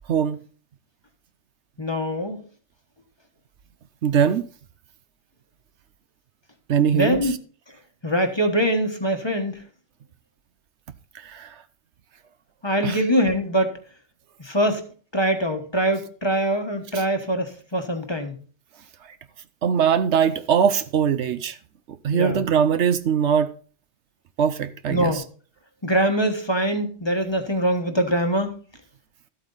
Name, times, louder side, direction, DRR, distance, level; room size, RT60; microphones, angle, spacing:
voice 1, 1.8-2.4 6.9-7.4 8.0-9.6 12.6-13.7 14.4-14.8 15.1-18.4 22.1-22.4 24.9-25.3 25.8-28.5, equal, 25° left, 1.3 m, -23 dB
voice 2, 4.0-4.5 6.7-7.2 11.2-11.5 12.8-13.0 19.6-21.6 22.0-23.5 24.4-25.2, right 7 dB, 75° right, 1.0 m, -21 dB
13.0 x 8.2 x 4.0 m
omnidirectional pair, 1.2 m